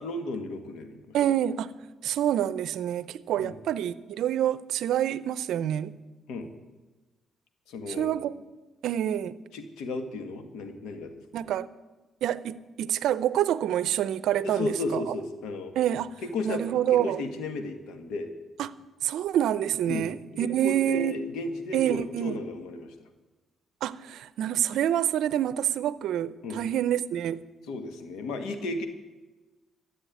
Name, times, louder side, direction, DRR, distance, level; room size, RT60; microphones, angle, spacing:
voice 1, 0.0-1.2 3.4-3.6 6.3-6.5 7.7-8.2 9.5-11.1 14.4-15.7 16.2-18.3 19.9-23.1 26.4-26.6 27.7-28.9, left 2 dB, 85° left, 1.6 m, -34 dB
voice 2, 1.1-1.7 2.0-6.0 7.9-8.3 8.8-9.4 11.3-11.7 12.2-15.1 15.8-17.2 18.6-18.7 19.0-21.2 21.7-22.4 23.8-27.4, right 11 dB, 80° right, 0.6 m, -27 dB
14.5 x 7.7 x 9.3 m
cardioid pair, 90°, 0 cm